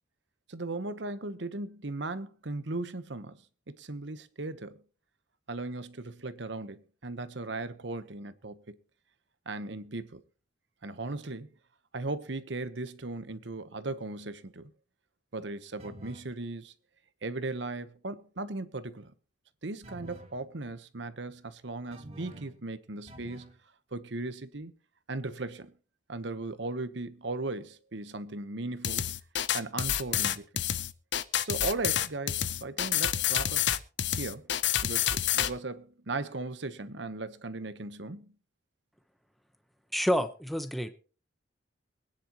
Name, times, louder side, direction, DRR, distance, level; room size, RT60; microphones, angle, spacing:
voice 1, 0.5-3.4 3.7-4.8 5.5-8.8 9.5-10.2 10.8-11.5 11.9-14.7 15.3-16.7 17.2-19.1 19.6-23.5 23.9-24.7 25.1-25.7 26.1-29.1 29.5-30.5 31.4-33.7 34.2-34.5 34.8-38.3, right 2 dB, 75° right, 1.1 m, -37 dB
sound 1, 15.8-16.3 19.8-20.4 21.9-22.6 23.1-23.6, right 1 dB, 30° right, 1.9 m, -48 dB
sound 2, 28.8-35.5, left 11 dB, 70° left, 0.7 m, -28 dB
voice 2, 39.9-40.9, equal, ahead, 0.9 m, -28 dB
23.5 x 10.0 x 3.0 m
head